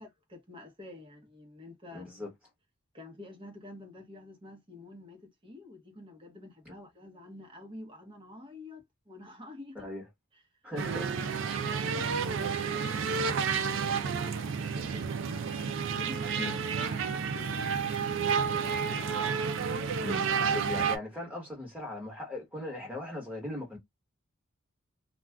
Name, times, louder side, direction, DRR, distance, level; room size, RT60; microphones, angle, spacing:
voice 1, 0.0-2.1 2.9-9.9 10.3-10.4 11.1-11.2 11.5-13.0 13.8-15.4 15.8-19.1, left 2 dB, 25° right, 0.9 m, -48 dB
voice 2, 1.9-2.3 6.6-6.7 9.7-10.0 10.6-11.2 16.4-16.6 18.5-18.6 18.9-19.0 20.0-23.8, left 2 dB, 5° right, 1.2 m, -39 dB
sound 1, 10.8-21.0, right 6 dB, 60° right, 0.4 m, -30 dB
2.4 x 2.3 x 3.3 m
head